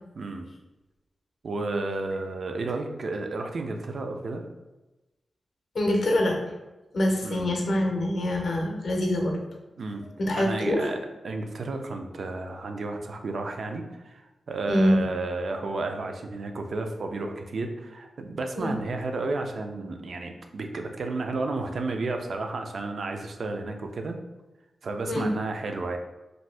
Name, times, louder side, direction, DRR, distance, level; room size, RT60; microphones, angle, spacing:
voice 1, 0.2-0.5 1.4-4.5 7.2-7.5 9.8-10.1 10.4-11.0 11.2-24.2 24.8-26.0, right 3 dB, 60° right, 5 dB, 0.3 m, -32 dB
voice 2, 5.7-6.4 6.9-9.4 10.2-10.9 14.7-15.1 18.6-18.7 25.1-25.3, left 1 dB, 55° left, 1 dB, 0.5 m, -24 dB
2.6 x 2.6 x 3.2 m, 1.0 s
wide cardioid pair, 140°, 0 cm